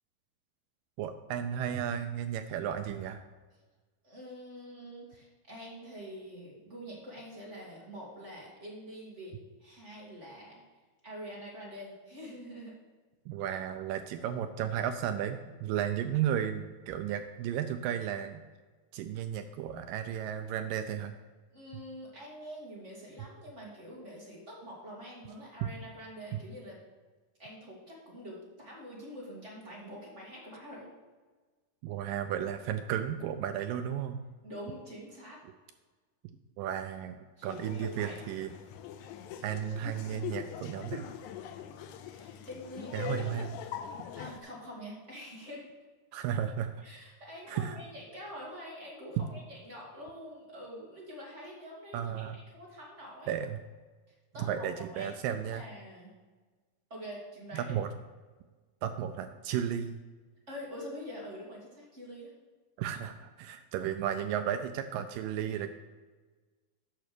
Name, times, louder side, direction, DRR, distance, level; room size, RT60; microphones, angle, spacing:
voice 1, 1.0-3.2 13.3-18.4 18.9-21.2 25.6-25.7 26.3-26.4 31.8-34.2 36.6-38.5 39.4-41.1 42.9-43.5 46.1-46.8 47.5-47.8 51.9-52.4 53.3-53.6 54.4-55.7 57.5-57.9 58.8-60.0 62.8-65.7, right 9 dB, 80° right, 8 dB, 2.1 m, -34 dB
voice 2, 4.0-10.6 11.0-12.8 13.5-13.6 21.5-26.8 27.4-30.9 34.4-35.4 37.4-38.4 42.0-43.1 44.1-45.7 46.8-53.4 54.1-54.7 54.9-55.1 55.5-56.1 56.9-57.8 60.5-62.3, equal, 25° right, -4 dB, 1.9 m, -46 dB
Laughter, 37.5-44.4, left 10 dB, 85° left, 1.7 m, -42 dB
9.2 x 6.0 x 6.7 m, 1.4 s
omnidirectional pair, 4.2 m